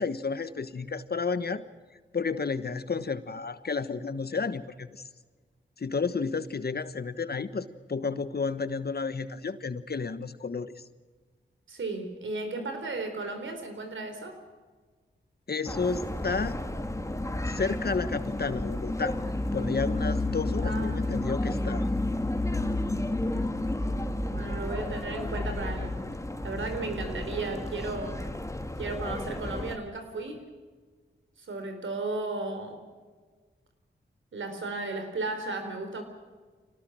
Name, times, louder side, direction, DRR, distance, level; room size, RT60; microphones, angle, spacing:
voice 1, 0.0-1.6 2.1-5.0 5.8-10.7 15.5-16.6 17.5-19.2 19.5-21.9, left 4 dB, 55° left, 13 dB, 1.3 m, -31 dB
voice 2, 11.7-14.4 20.6-21.2 24.3-26.0 26.4-28.3 28.8-30.4 31.4-32.8 34.3-36.0, right 3 dB, 80° right, 6 dB, 4.0 m, -35 dB
sound 1, 15.7-29.8, left 1 dB, 15° left, 2.1 m, -31 dB
25.0 x 18.0 x 6.4 m, 1.4 s
cardioid pair, 40°, 20 cm